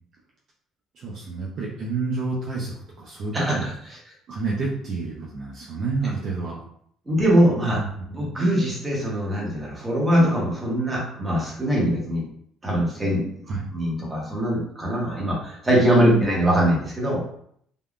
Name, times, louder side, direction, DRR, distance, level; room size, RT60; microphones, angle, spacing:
voice 1, 0.9-3.7 4.3-6.6 7.7-7.9 8.2-8.3 13.5-13.7 16.0-16.2, right 3 dB, 40° right, -4 dB, 0.4 m, -29 dB
voice 2, 7.1-12.3 12.6-17.2, equal, 10° right, -4 dB, 0.8 m, -22 dB
3.4 x 2.1 x 2.3 m, 0.66 s
cardioid pair, 175°, 0 cm